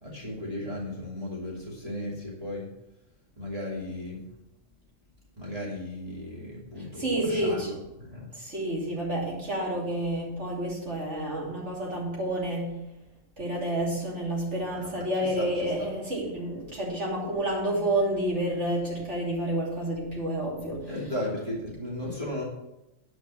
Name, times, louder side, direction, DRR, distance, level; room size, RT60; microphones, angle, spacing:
voice 1, 0.0-2.6 3.4-4.2 5.4-7.7 8.0-8.3 14.7-15.0 15.4-15.5 20.9-22.4, left 1 dB, 25° right, -6 dB, 2.8 m, -35 dB
voice 2, 6.8-7.8 8.3-12.7 13.4-21.0, right 1 dB, 55° right, -4 dB, 3.4 m, -29 dB
10.5 x 5.4 x 7.3 m, 0.92 s
omnidirectional pair, 1.4 m